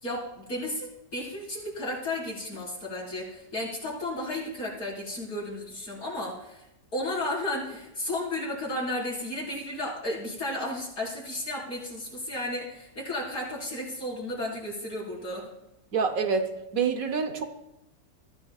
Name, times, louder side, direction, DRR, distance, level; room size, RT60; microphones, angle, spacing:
voice 1, 0.0-6.6 6.9-15.4, left 1 dB, 75° left, -5 dB, 5.2 m, -33 dB
voice 2, 15.9-17.4, right 5 dB, 65° right, 7 dB, 1.5 m, -27 dB
23.0 x 14.5 x 2.4 m, 0.88 s
omnidirectional pair, 1.6 m